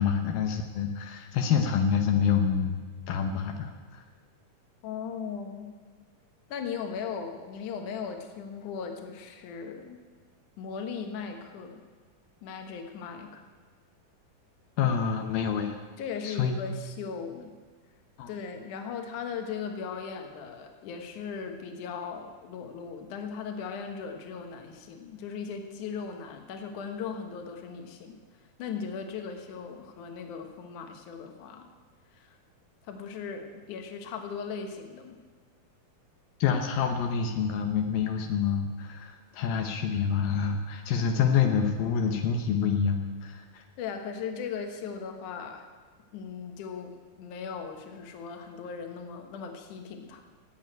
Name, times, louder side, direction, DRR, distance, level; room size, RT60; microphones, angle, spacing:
voice 1, 0.0-2.8 3.1-4.0 14.8-15.8 16.2-16.6 18.2-18.3 36.4-43.6, left 7 dB, 80° left, 4 dB, 2.8 m, -27 dB
voice 2, 4.8-5.7 6.5-10.0 10.6-11.8 12.4-13.4 16.0-17.5 18.3-28.2 28.6-31.7 32.1-32.4 32.8-35.2 43.8-45.6 46.1-50.2, left 6 dB, 65° left, 5 dB, 2.7 m, -38 dB
16.0 x 8.3 x 9.1 m, 1.5 s
omnidirectional pair, 4.2 m